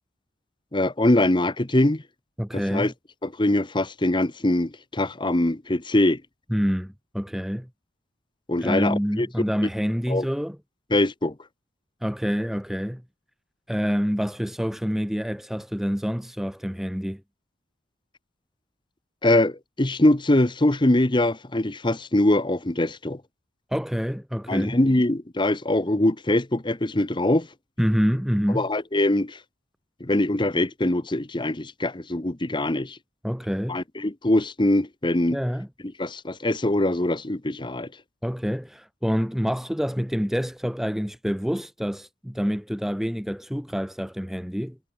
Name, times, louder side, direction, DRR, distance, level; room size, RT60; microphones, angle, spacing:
voice 1, 0.7-2.0 2.5-2.9 3.2-6.2 8.5-9.3 10.1-10.3 10.9-11.3 19.2-23.2 24.5-27.5 28.5-29.4 30.0-33.0 33.7-35.4 36.0-37.9, left 1 dB, 25° left, 1.0 m, -23 dB
voice 2, 2.4-2.9 6.5-7.7 8.6-10.6 12.0-13.0 13.7-17.2 23.7-24.8 27.8-28.7 33.2-33.8 35.3-35.7 38.2-44.8, equal, ahead, 0.8 m, -27 dB
head